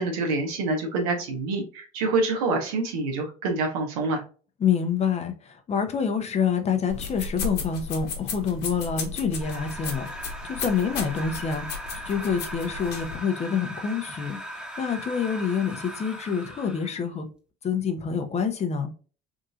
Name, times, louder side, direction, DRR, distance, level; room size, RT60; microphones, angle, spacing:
voice 1, 0.0-4.2, right 3 dB, 85° right, 1.1 m, -26 dB
voice 2, 4.6-11.8 12.1-17.3 17.6-18.9, left 6 dB, 35° left, 0.8 m, -27 dB
sound 1, 6.9-13.2, left 4 dB, 65° left, 1.1 m, -35 dB
sound 2, 9.4-17.0, equal, 5° right, 1.1 m, -39 dB
3.7 x 2.7 x 2.4 m
supercardioid pair, 80°, 18 cm